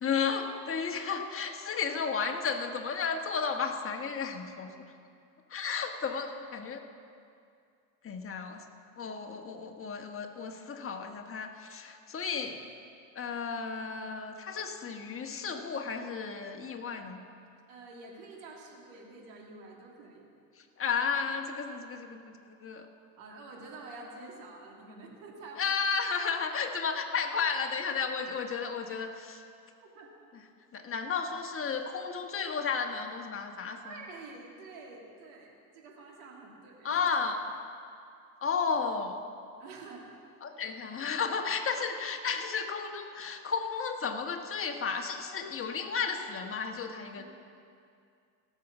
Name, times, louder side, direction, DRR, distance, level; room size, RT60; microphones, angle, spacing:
voice 1, 0.0-4.9 5.5-6.8 8.0-8.6 9.0-12.6 13.1-17.2 20.8-22.3 22.6-22.9 25.6-29.4 30.7-34.0 36.8-37.5 38.4-39.2 40.4-47.2, left 5 dB, 25° left, 3 dB, 1.4 m, -33 dB
voice 2, 17.7-20.3 23.2-25.7 29.9-30.1 33.8-37.0 39.6-40.1 41.8-41.9 47.2-47.3, right 3 dB, 65° right, -1 dB, 2.9 m, -48 dB
17.5 x 6.9 x 6.1 m, 2.4 s
hypercardioid pair, 80°, 50 cm